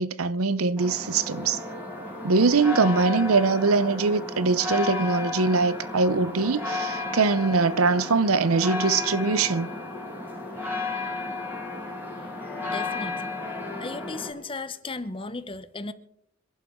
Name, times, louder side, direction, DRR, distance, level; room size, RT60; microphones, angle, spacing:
voice 1, 0.0-1.6 2.2-9.7, right 4 dB, 90° right, 0.8 m, -22 dB
sound 1, 0.8-14.3, left 3 dB, 10° right, 6.1 m, -33 dB
voice 2, 12.6-13.3 13.8-15.9, left 3 dB, 25° left, 0.8 m, -35 dB
26.5 x 11.0 x 3.7 m
head